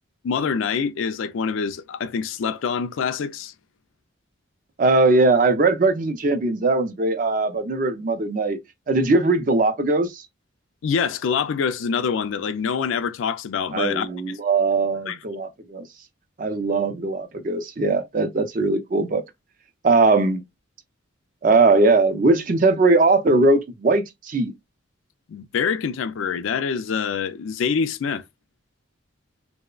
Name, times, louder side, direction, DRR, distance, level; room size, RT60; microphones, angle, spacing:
voice 1, 0.2-3.5 10.8-14.4 15.1-15.2 25.3-28.2, left 6 dB, 80° left, 0.4 m, -25 dB
voice 2, 4.8-8.6 8.9-10.2 13.7-15.9 16.4-19.2 19.8-20.4 21.4-24.5, right 3 dB, 40° right, 0.4 m, -20 dB
2.9 x 2.0 x 2.3 m
head